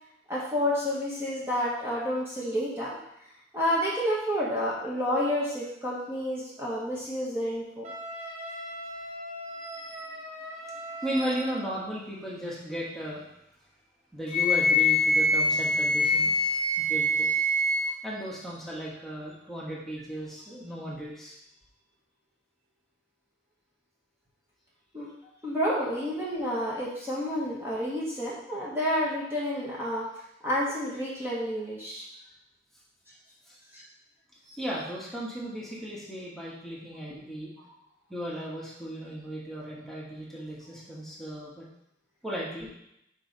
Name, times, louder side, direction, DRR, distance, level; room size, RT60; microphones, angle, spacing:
voice 1, 0.3-3.0 3.5-7.9 24.9-25.1 25.4-30.1 30.4-32.1 33.7-33.8, equal, 15° right, -6 dB, 1.3 m, -29 dB
Wind instrument woodwind instrument, 7.8-11.7, equal, 40° right, 1.6 m, -40 dB
voice 2, 9.5-10.0 11.0-13.2 14.1-17.5 18.0-21.3 33.5-33.6 34.4-37.5 38.1-41.7 42.2-42.7, equal, ahead, -7 dB, 1.3 m, -36 dB
Wind instrument woodwind instrument 2, 14.3-18.0, left 1 dB, 65° right, 1.6 m, -24 dB
4.5 x 4.5 x 5.3 m, 0.78 s
head